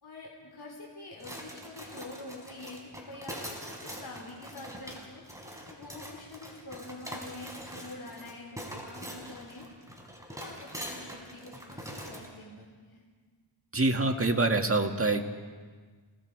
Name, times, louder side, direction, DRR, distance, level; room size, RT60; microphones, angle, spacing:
voice 1, 0.0-3.4 3.7-5.2 5.6-9.6 10.3-13.0, left 2 dB, 50° left, -2 dB, 4.1 m, -46 dB
sound 1, 1.2-12.3, equal, 5° right, 4.9 m, -43 dB
voice 2, 13.7-15.2, right 2 dB, 30° right, 4 dB, 1.8 m, -25 dB
29.5 x 18.5 x 4.8 m, 1.5 s
cardioid pair, 60°, 48 cm